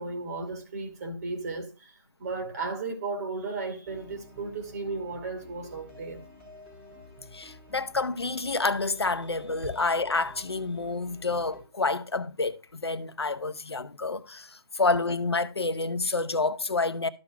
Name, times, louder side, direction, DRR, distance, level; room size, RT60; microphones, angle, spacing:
voice 1, 0.0-1.7 2.2-6.2, right 3 dB, 40° right, 2.4 m, -34 dB
sound 1, 3.9-11.6, left 1 dB, 5° right, 3.5 m, -50 dB
voice 2, 7.3-14.5 14.7-17.1, left 3 dB, 90° left, 0.8 m, -28 dB
13.0 x 6.2 x 2.3 m
figure-of-eight pair, 150°, 13 cm